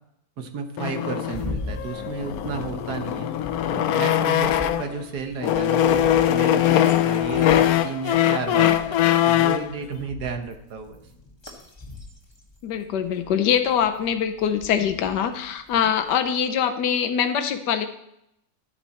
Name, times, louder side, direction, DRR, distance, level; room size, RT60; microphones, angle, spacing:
voice 1, 0.4-3.3 3.7-11.0, right 5 dB, 75° right, 6 dB, 1.7 m, -33 dB
sound 1, 0.8-5.0 5.4-9.7, left 11 dB, 70° left, 1.0 m, -21 dB
sound 2, 1.3-16.4, left 2 dB, 15° left, 1.4 m, -41 dB
voice 2, 12.6-17.9, left 8 dB, 90° left, 8 dB, 1.4 m, -23 dB
11.5 x 8.3 x 4.2 m, 0.78 s
omnidirectional pair, 1.8 m